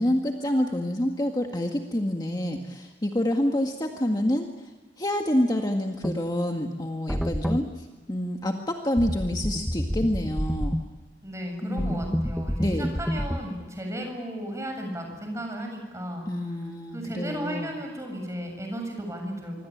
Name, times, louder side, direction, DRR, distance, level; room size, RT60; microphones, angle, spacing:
voice 1, 0.0-4.7 5.0-10.8 11.6-12.1 12.6-13.0 16.3-17.7, left 1 dB, 20° left, 2 dB, 1.8 m, -27 dB
sound 1, 6.0-6.2 7.1-7.6 9.0-10.8 11.8-13.4, equal, ahead, 1.0 m, -28 dB
voice 2, 11.2-16.3 16.9-19.7, equal, 15° right, 3 dB, 7.5 m, -34 dB
26.0 x 25.5 x 8.7 m, 1.3 s
head